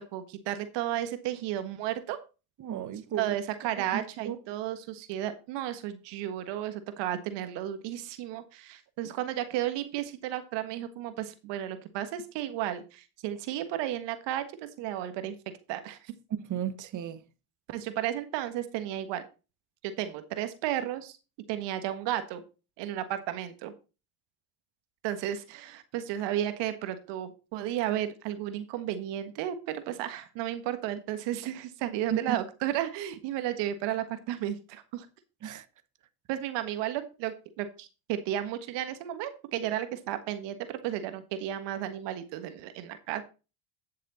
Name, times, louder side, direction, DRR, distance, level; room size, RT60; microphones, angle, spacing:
voice 1, 0.0-2.2 3.2-15.3 15.7-16.0 17.7-19.2 19.8-21.2 21.5-22.4 22.8-23.7 25.0-35.1 36.3-43.2, right 12 dB, 65° right, 1.6 m, -33 dB
voice 2, 2.6-3.3 3.9-4.4 16.3-17.2 32.1-32.4 35.4-35.6, right 9 dB, 40° right, 1.2 m, -34 dB
11.0 x 6.6 x 4.2 m
hypercardioid pair, 75°, 45 cm